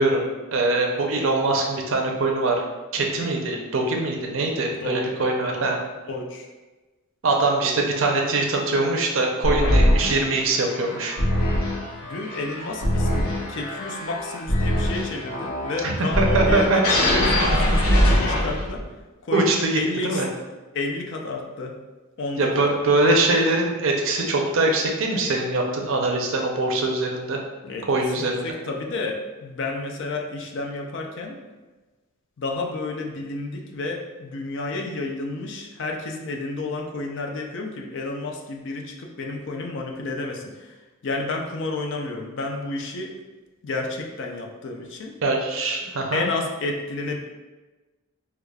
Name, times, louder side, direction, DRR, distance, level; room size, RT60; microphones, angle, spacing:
voice 1, 0.0-2.6 2.9-5.8 7.2-11.2 15.8-16.8 19.3-20.3 22.4-27.4 27.9-28.5 45.2-46.2, right 2 dB, 60° right, 1 dB, 0.5 m, -22 dB
voice 2, 6.1-6.5 7.6-7.9 12.0-18.8 19.2-20.2 20.7-21.8 22.2-22.9 27.6-31.4 32.4-40.8 41.0-43.1 43.6-45.1 46.1-47.2, left 2 dB, 55° left, 1 dB, 0.4 m, -31 dB
sound 1, 9.4-18.9, equal, 80° left, 0.9 m, -22 dB
4.8 x 2.3 x 2.3 m, 1.2 s
head